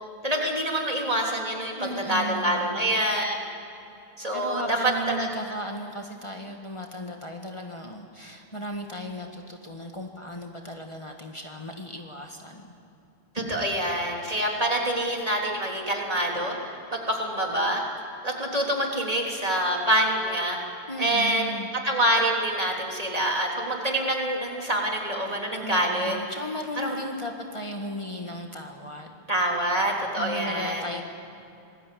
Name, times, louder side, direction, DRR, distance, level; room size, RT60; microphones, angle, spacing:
voice 1, 0.2-3.3 4.2-5.2 13.3-17.8 18.2-20.6 21.0-21.5 21.8-26.2 26.8-27.0 29.3-30.8, right 1 dB, 35° right, -1 dB, 3.6 m, -26 dB
voice 2, 1.8-2.8 4.3-12.7 20.9-21.7 25.6-29.2 30.2-31.0, equal, 30° left, 2 dB, 1.7 m, -36 dB
27.0 x 20.5 x 8.6 m, 2.7 s
omnidirectional pair, 1.0 m